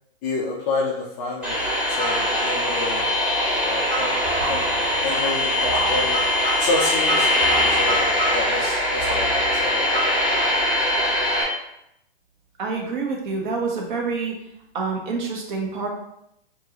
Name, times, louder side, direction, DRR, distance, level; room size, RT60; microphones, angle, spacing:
voice 1, 0.2-1.6 1.9-3.1 3.6-4.2 4.5-4.6 5.0-6.2 6.6-7.4 7.7-10.1, left 3 dB, 20° left, -3 dB, 0.3 m, -29 dB
sound 1, 1.4-11.4, left 1 dB, 5° right, 1.0 m, -22 dB
sound 2, 4.2-5.2 5.6-6.6 7.4-8.4 9.0-9.7, right 1 dB, 25° right, 1.2 m, -31 dB
voice 2, 12.6-14.3 14.7-15.9, right 4 dB, 50° right, 0 dB, 1.1 m, -27 dB
4.5 x 2.6 x 2.9 m, 0.79 s
hypercardioid pair, 135°, 30 cm